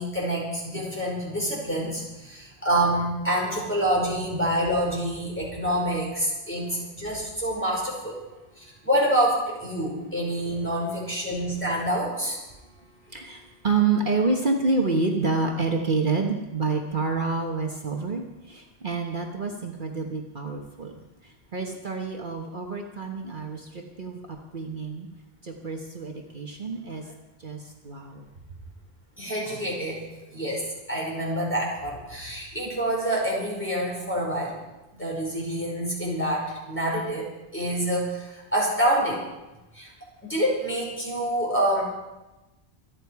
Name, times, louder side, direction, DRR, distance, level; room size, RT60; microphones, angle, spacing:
voice 1, 0.0-8.2 8.6-12.4 29.2-30.0 30.3-34.5 35.0-39.2 39.7-39.9 40.2-41.8, right 1 dB, 10° left, -4 dB, 5.2 m, -27 dB
voice 2, 6.3-6.8 12.8-25.1 25.4-28.3, right 4 dB, 50° right, 2 dB, 1.4 m, -28 dB
26.0 x 9.7 x 4.8 m, 1.0 s
omnidirectional pair, 1.1 m